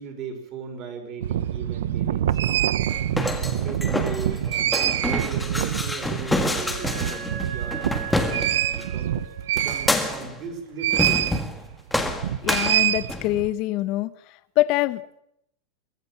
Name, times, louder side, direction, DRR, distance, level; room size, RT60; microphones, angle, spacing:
voice 1, 0.0-2.7 3.6-7.9 8.7-9.2 9.5-11.4, right 5 dB, 25° right, 5 dB, 5.1 m, -37 dB
sound 1, 1.2-10.2 10.8-11.4 11.7-13.5, right 11 dB, 80° right, 1.2 m, -25 dB
sound 2, 2.9-8.9 9.6-10.4 10.9-11.6 11.9-13.4, left 2 dB, 5° left, 1.8 m, -28 dB
Wind instrument woodwind instrument, 5.8-10.4, right 6 dB, 50° right, 3.1 m, -39 dB
voice 2, 12.4-14.1 14.6-15.2, left 17 dB, 35° left, 14 dB, 1.2 m, -24 dB
23.5 x 19.0 x 7.4 m, 0.74 s
supercardioid pair, 175°, 0 cm